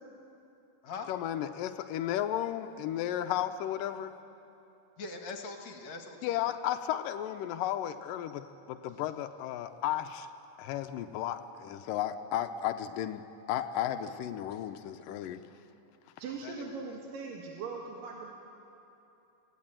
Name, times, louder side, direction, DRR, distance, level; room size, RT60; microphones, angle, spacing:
voice 1, 1.1-4.1 6.2-10.3 10.6-13.2 13.5-15.4, left 11 dB, 90° left, 8 dB, 2.4 m, -34 dB
voice 2, 5.0-6.5 14.5-14.6 16.3-16.9, left 4 dB, 60° left, 3 dB, 2.9 m, -43 dB
voice 3, 16.2-18.3, right 4 dB, 85° right, 0 dB, 3.4 m, -40 dB
27.0 x 17.0 x 9.0 m, 2.9 s
omnidirectional pair, 3.8 m